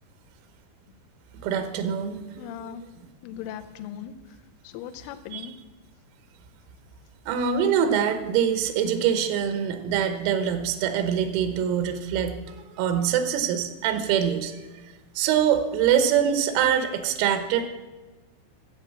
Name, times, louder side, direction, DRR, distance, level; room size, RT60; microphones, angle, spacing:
voice 1, 1.4-2.5 5.3-5.5 7.3-14.6 15.2-17.7, right 8 dB, 85° right, 8 dB, 3.8 m, -24 dB
voice 2, 2.4-2.8 3.2-4.2 4.6-5.6, left 10 dB, 80° left, 8 dB, 3.0 m, -38 dB
14.0 x 7.1 x 7.5 m, 1.2 s
omnidirectional pair, 6.0 m